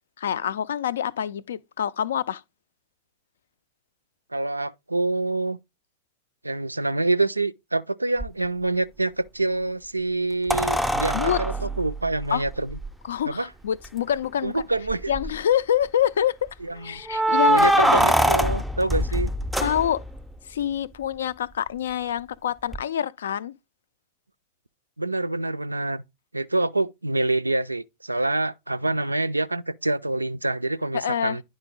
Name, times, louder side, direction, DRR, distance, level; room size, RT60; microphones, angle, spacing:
voice 1, 0.2-2.4 11.1-11.4 12.3-12.4 13.0-14.6 15.1-16.5 16.8-18.0 19.6-20.0 20.5-23.5 30.9-31.4, left 9 dB, 65° left, 0.4 m, -26 dB
voice 2, 4.3-5.6 6.4-12.8 13.2-13.5 14.4-15.1 16.6-17.0 17.5-19.3 25.0-26.0 26.3-31.4, right 2 dB, 85° right, 0.3 m, -26 dB
sound 1, 8.2-8.3 10.5-12.9 13.8-13.9 14.2-14.3 14.9-15.4 17.1-20.2 22.7-22.8, right 1 dB, ahead, 0.5 m, -23 dB
10.0 x 4.0 x 3.8 m
figure-of-eight pair, 90°, 0 cm